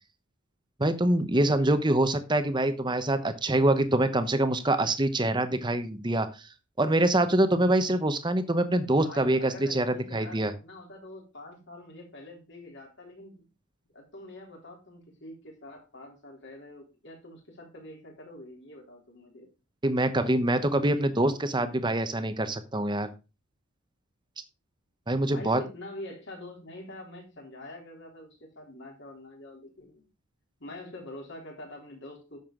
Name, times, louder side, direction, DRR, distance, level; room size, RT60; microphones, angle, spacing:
voice 1, 0.8-6.5 6.8-10.5 19.8-23.1 25.1-25.6, right 1 dB, 20° right, 10 dB, 1.0 m, -25 dB
voice 2, 9.0-13.5 13.9-19.5 25.3-30.1 30.6-32.4, left 1 dB, 55° left, 1 dB, 3.5 m, -45 dB
10.5 x 7.2 x 3.8 m, 0.30 s
head